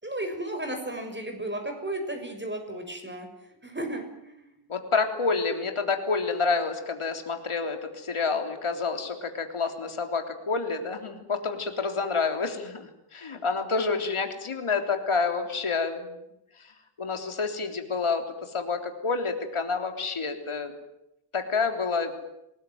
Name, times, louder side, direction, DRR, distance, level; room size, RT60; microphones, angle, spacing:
voice 1, 0.0-3.3 3.6-4.5, right 1 dB, 20° right, 5 dB, 6.6 m, -34 dB
voice 2, 4.7-16.1 17.0-20.7 21.3-22.1, left 4 dB, 80° left, 5 dB, 3.6 m, -28 dB
27.0 x 20.0 x 9.4 m, 0.85 s
wide cardioid pair, 100°, 50 cm